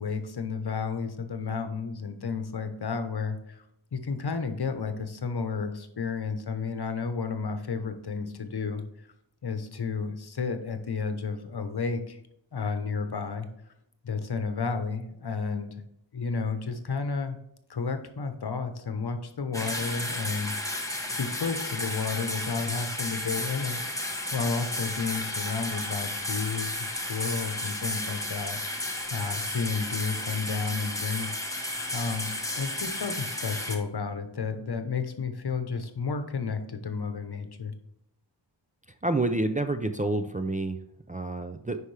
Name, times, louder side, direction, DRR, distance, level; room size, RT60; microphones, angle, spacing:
voice 1, 0.0-3.6 3.9-8.8 9.4-12.2 12.5-13.5 14.0-15.7 16.1-17.4 17.7-20.8 21.2-23.8 24.3-31.3 31.9-37.7, left 5 dB, 60° left, 8 dB, 1.0 m, -32 dB
sound 1, 19.5-33.8, left 1 dB, 5° left, 1.2 m, -33 dB
voice 2, 39.0-40.8 41.1-41.8, right 2 dB, 20° right, 8 dB, 0.4 m, -28 dB
10.0 x 4.9 x 3.3 m, 0.78 s
wide cardioid pair, 90°, 44 cm